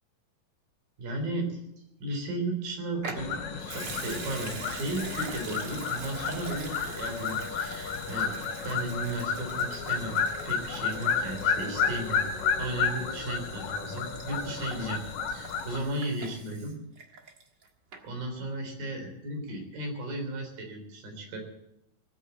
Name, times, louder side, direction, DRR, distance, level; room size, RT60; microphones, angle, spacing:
voice 1, 1.0-1.6 2.0-8.3 8.6-10.2 10.5-12.2 12.6-15.0 15.3-16.8 18.0-21.4, right 2 dB, 75° right, 3 dB, 5.4 m, -35 dB
Water tap faucet / Sink (filling or washing) / Liquid, 3.0-17.6 17.9-18.0, right 4 dB, 45° right, 1.5 m, -44 dB
sound 1, 3.2-15.8, left 6 dB, 70° left, 3.2 m, -32 dB
19.0 x 8.6 x 8.0 m, 0.83 s
omnidirectional pair, 4.2 m